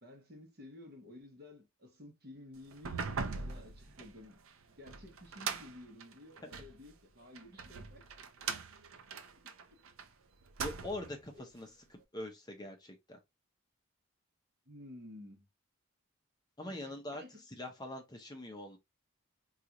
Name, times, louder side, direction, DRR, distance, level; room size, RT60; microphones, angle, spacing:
voice 1, 0.0-4.4 4.7-8.2 9.1-9.8 11.3-11.4 14.7-15.5 16.7-17.4, left 1 dB, 45° right, 1.0 m, -53 dB
sound 1, 2.7-6.8 7.4-10.1 10.4-11.2, right 5 dB, 70° right, 0.5 m, -41 dB
voice 2, 10.6-13.2 16.6-18.8, left 1 dB, 20° left, 0.6 m, -44 dB
3.8 x 2.4 x 2.9 m
head